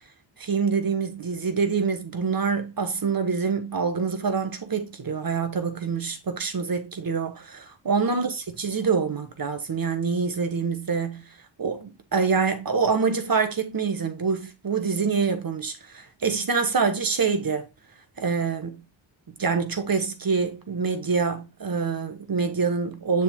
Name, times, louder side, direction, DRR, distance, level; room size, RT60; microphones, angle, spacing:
voice 1, 0.4-11.3 11.6-17.7 18.2-18.8 19.4-23.2, right 5 dB, 45° right, 1.4 m, -26 dB
7.1 x 6.3 x 2.3 m
cardioid pair, 60°, 48 cm